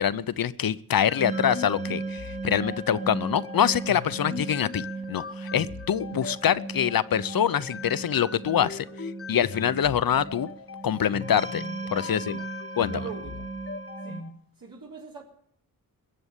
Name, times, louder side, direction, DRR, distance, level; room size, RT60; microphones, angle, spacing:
voice 1, 0.0-8.8 9.3-10.5 10.8-11.6 11.9-12.2 12.8-12.9, left 9 dB, 70° left, 16 dB, 0.7 m, -25 dB
sound 1, 1.1-14.3, left 5 dB, 35° left, 1.0 m, -41 dB
sound 2, 1.2-14.2, right 3 dB, 20° right, 1.1 m, -37 dB
voice 2, 11.8-12.4 12.9-13.5 14.0-14.2 14.6-15.2, right 6 dB, 65° right, -3 dB, 3.7 m, -42 dB
21.5 x 7.8 x 8.3 m, 0.63 s
wide cardioid pair, 100°, 37 cm